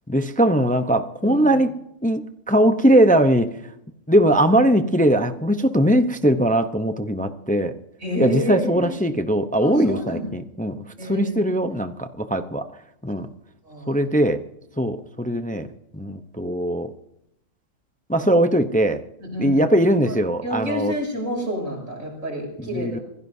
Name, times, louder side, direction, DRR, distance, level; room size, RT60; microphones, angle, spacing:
voice 1, 0.1-1.7 2.0-2.2 2.5-3.5 4.1-7.7 8.2-10.8 11.1-12.7 13.0-13.3 13.9-14.4 14.8-15.7 15.9-16.9 18.1-19.0 19.4-20.9 22.7-23.0, right 1 dB, 10° left, 9 dB, 0.5 m, -20 dB
voice 2, 1.2-1.6 8.0-9.0 9.6-10.2 11.0-11.3 11.7-11.8 13.6-14.0 19.2-19.7 20.1-23.0, equal, 65° right, -1 dB, 7.6 m, -29 dB
26.0 x 16.5 x 2.7 m, 0.81 s
omnidirectional pair, 1.4 m